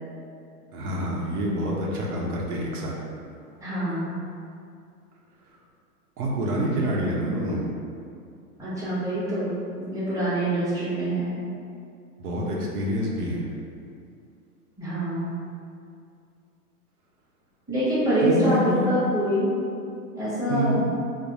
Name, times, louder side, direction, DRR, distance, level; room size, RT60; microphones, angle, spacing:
voice 1, 0.7-2.9 6.2-7.7 12.2-13.5 18.2-19.2 20.5-20.8, equal, 75° right, -3 dB, 0.8 m, -27 dB
voice 2, 3.6-4.1 8.6-9.5 9.9-11.3 14.8-15.3 17.7-19.5 20.1-20.7, right 1 dB, 5° right, -11 dB, 1.1 m, -25 dB
3.3 x 2.0 x 3.9 m, 2.4 s
hypercardioid pair, 120°, 46 cm